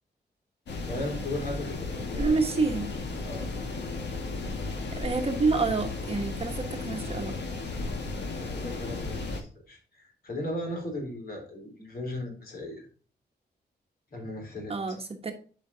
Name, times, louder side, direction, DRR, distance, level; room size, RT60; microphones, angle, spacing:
sound 1, 0.7-9.4, left 3 dB, 85° left, 1.8 m, -34 dB
voice 1, 0.9-2.4 3.2-3.5 8.2-12.9 14.1-14.7, left 1 dB, 60° left, 1 dB, 3.6 m, -37 dB
voice 2, 2.2-2.9 4.9-7.4 14.7-15.3, right 4 dB, 35° right, 4 dB, 1.1 m, -28 dB
11.0 x 5.1 x 2.7 m, 0.40 s
wide cardioid pair, 175°, 18 cm